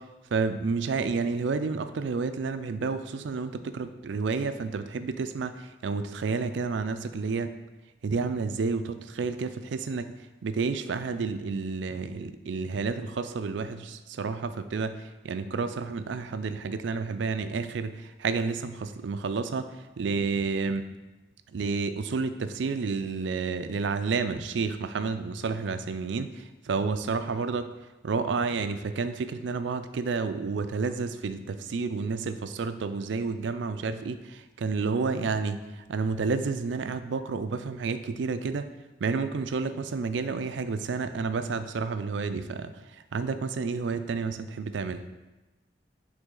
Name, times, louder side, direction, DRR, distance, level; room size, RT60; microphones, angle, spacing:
voice 1, 0.3-5.5 5.8-7.5 8.0-10.1 10.4-15.0 15.2-17.9 18.2-19.7 20.0-20.8 21.5-26.3 26.7-27.7 28.0-35.6 35.9-38.7 39.0-42.7 43.1-45.0, right 4 dB, 80° right, 10 dB, 0.4 m, -30 dB
8.0 x 3.4 x 3.8 m, 1.1 s
head